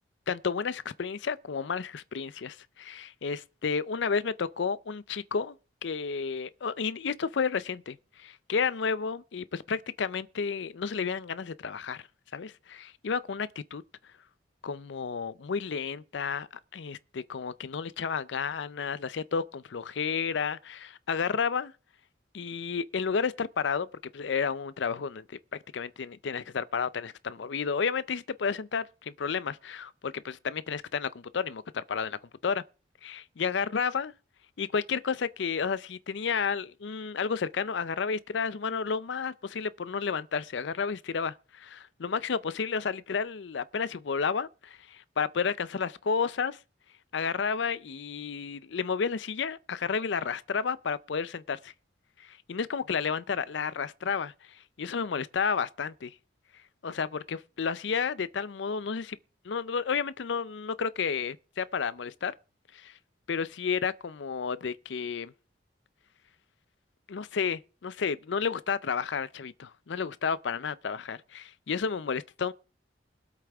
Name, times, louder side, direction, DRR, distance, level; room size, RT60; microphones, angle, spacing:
voice 1, 0.3-5.6 5.8-12.0 12.3-13.8 14.6-21.7 22.3-23.9 24.1-25.2 25.7-32.2 32.4-32.6 33.0-34.1 34.6-46.6 47.1-51.7 52.2-56.2 56.8-59.2 59.4-62.3 62.7-63.0 63.3-65.3 67.1-72.5, left 6 dB, 70° left, 0.5 m, -31 dB
22.0 x 8.2 x 3.5 m
head